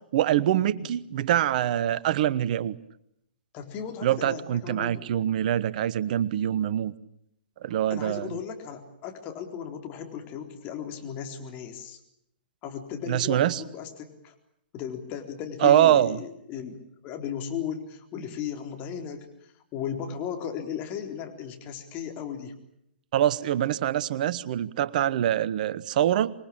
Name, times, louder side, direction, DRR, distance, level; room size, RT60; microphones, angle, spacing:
voice 1, 0.1-2.8 4.0-6.9 7.6-8.3 13.1-13.6 15.6-16.2 23.1-26.3, right 11 dB, 50° right, 17 dB, 1.1 m, -24 dB
voice 2, 3.5-5.1 7.9-12.0 12.6-14.3 14.7-22.5, left 8 dB, 30° left, 4 dB, 4.1 m, -36 dB
26.0 x 21.5 x 8.8 m, 0.75 s
figure-of-eight pair, 120°, 6 cm